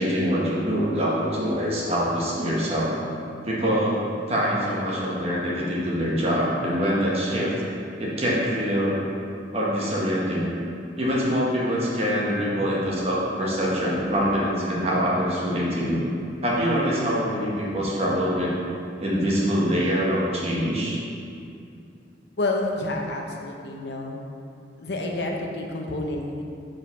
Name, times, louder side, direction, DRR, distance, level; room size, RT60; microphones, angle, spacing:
voice 1, 0.0-2.9 3.4-4.0 4.3-7.5 8.0-9.0 9.5-10.5 11.0-16.0 16.4-18.5 19.0-21.0, equal, 35° right, -5 dB, 1.1 m, -24 dB
voice 2, 22.4-24.2 24.8-26.4, left 2 dB, 65° left, 1 dB, 0.7 m, -29 dB
4.7 x 3.8 x 5.7 m, 2.5 s
head